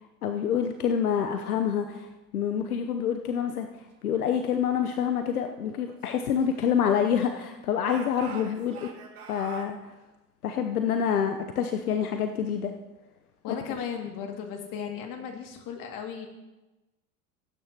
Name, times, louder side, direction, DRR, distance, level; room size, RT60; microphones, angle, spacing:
voice 1, 0.2-8.9 9.3-9.9 10.4-12.7 13.5-13.8, left 8 dB, 80° left, 6 dB, 0.9 m, -27 dB
Speech / Shout, 5.8-7.4 7.8-9.7, right 6 dB, 80° right, 1.9 m, -46 dB
voice 2, 13.4-16.3, left 7 dB, 45° left, 3 dB, 2.3 m, -36 dB
18.5 x 9.4 x 2.9 m, 1.1 s
hypercardioid pair, 90°, 44 cm